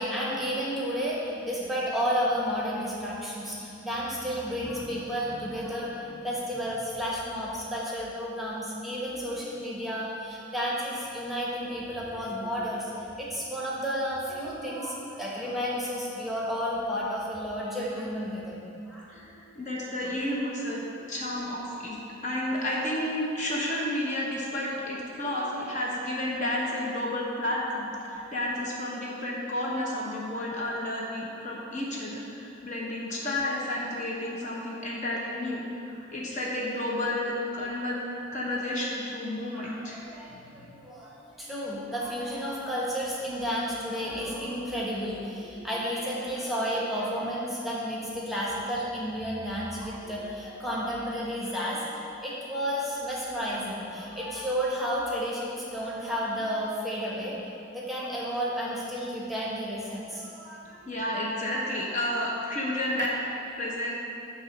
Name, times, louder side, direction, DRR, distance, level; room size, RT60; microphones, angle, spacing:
voice 1, 0.0-19.5 19.8-19.9 28.1-28.2 39.5-51.8 52.2-57.4 57.7-60.8, equal, ahead, -6 dB, 1.1 m, -32 dB
voice 2, 19.6-20.8 21.1-38.0 38.3-40.0 40.3-40.5 60.9-63.1 63.6-64.0, left 1 dB, 40° left, -4 dB, 0.9 m, -31 dB
8.7 x 3.1 x 6.1 m, 2.7 s
head